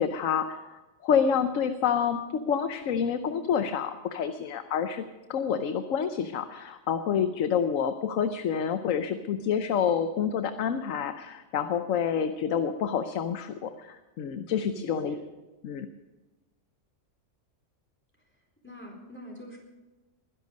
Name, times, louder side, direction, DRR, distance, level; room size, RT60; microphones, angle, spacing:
voice 1, 0.0-5.0 5.3-15.1 15.6-15.9, left 7 dB, 80° left, 9 dB, 1.2 m, -28 dB
voice 2, 14.5-15.2 18.6-19.6, equal, 10° left, -1 dB, 4.0 m, -43 dB
22.0 x 10.5 x 5.2 m, 1.1 s
omnidirectional pair, 1.3 m